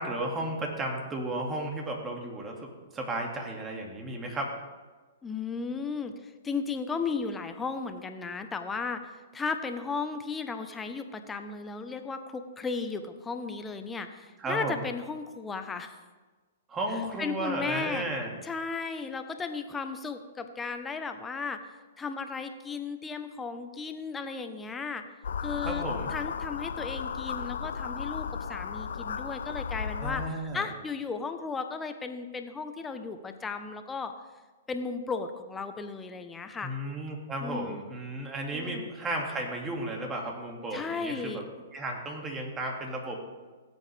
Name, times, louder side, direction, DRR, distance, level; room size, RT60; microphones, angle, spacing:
voice 1, 0.0-4.5 14.4-14.8 16.7-18.3 25.6-26.1 30.0-30.7 36.6-41.4 41.7-43.2, right 1 dB, 20° right, 1 dB, 2.2 m, -34 dB
voice 2, 5.2-16.0 17.2-18.0 18.4-25.0 25.4-25.8 26.1-34.1 34.7-36.7 37.4-37.9 38.5-38.9 40.7-41.5, left 4 dB, 15° left, 7 dB, 0.9 m, -35 dB
sound 1, 25.2-30.3, left 6 dB, 75° left, 0.5 m, -34 dB
17.0 x 8.1 x 3.4 m, 1.3 s
hypercardioid pair, 130°, 0 cm